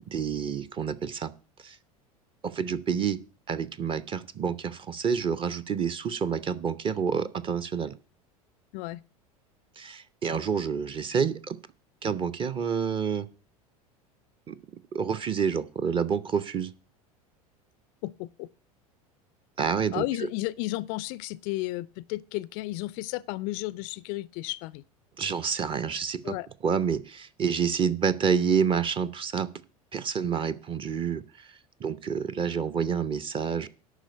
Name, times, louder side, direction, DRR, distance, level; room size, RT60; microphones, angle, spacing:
voice 1, 0.1-1.3 1.6-1.8 2.4-3.2 3.5-7.9 9.8-11.6 12.0-13.3 14.5-14.6 14.9-16.7 19.6-20.0 25.2-26.4 26.6-29.5 29.9-31.2 31.8-33.7, right 6 dB, 25° right, 0.7 m, -28 dB
voice 2, 18.0-18.5 19.9-24.8 26.2-26.5, left 18 dB, 45° left, 0.4 m, -33 dB
11.5 x 4.3 x 7.7 m
figure-of-eight pair, 75°, 19 cm